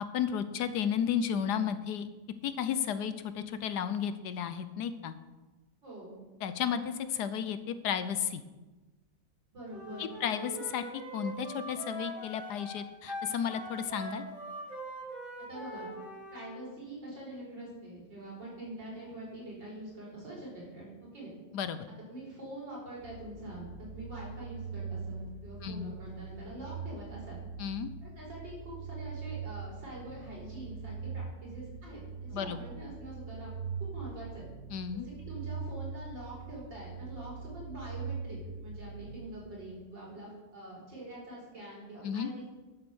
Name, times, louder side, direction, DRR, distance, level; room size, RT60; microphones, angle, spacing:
voice 1, 0.0-2.1 2.4-5.1 6.4-8.4 10.0-14.3 21.5-21.9 25.6-25.9 27.6-27.9 32.3-32.6 34.7-35.1 42.0-42.3, left 8 dB, 70° left, 12 dB, 1.2 m, -33 dB
voice 2, 5.8-6.2 9.5-10.1 15.5-15.9 16.3-21.3 22.1-27.4 28.0-33.5 33.8-34.5 35.0-42.6, right 1 dB, 85° right, -5 dB, 5.4 m, -45 dB
Wind instrument woodwind instrument, 9.7-16.5, right 1 dB, 50° right, 5.5 m, -42 dB
sound 1, 23.0-39.8, right 5 dB, 65° right, 1.6 m, -42 dB
11.0 x 7.9 x 6.2 m, 1.2 s
omnidirectional pair, 1.9 m